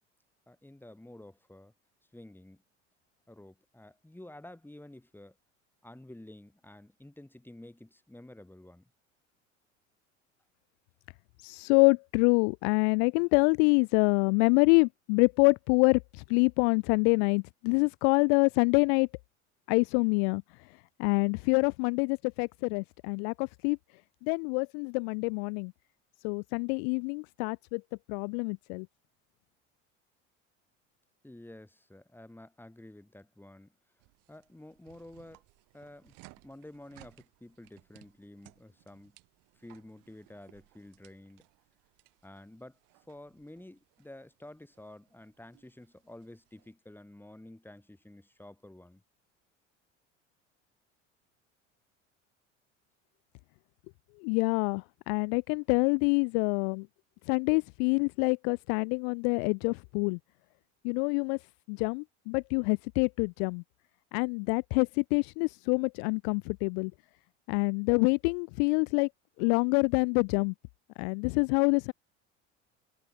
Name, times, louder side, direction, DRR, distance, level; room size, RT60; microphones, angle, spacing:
voice 1, 0.5-1.7 2.1-2.6 3.3-5.4 5.8-8.9 31.2-33.7 34.3-35.4 35.7-36.2 36.4-39.2 39.5-41.4 42.2-49.0, left 1 dB, 5° left, 4.8 m, -51 dB
voice 2, 11.4-19.1 19.7-20.4 21.0-23.8 24.2-25.7 26.2-27.8 28.1-28.9 54.2-56.9 57.3-60.2 60.8-61.4 61.7-63.6 64.1-66.9 67.5-69.1 69.4-70.5 71.0-71.9, left 40 dB or more, 60° left, 0.7 m, -26 dB
sound 1, 34.0-46.7, right 25 dB, 60° right, 7.1 m, -62 dB
hypercardioid pair, 75°, 37 cm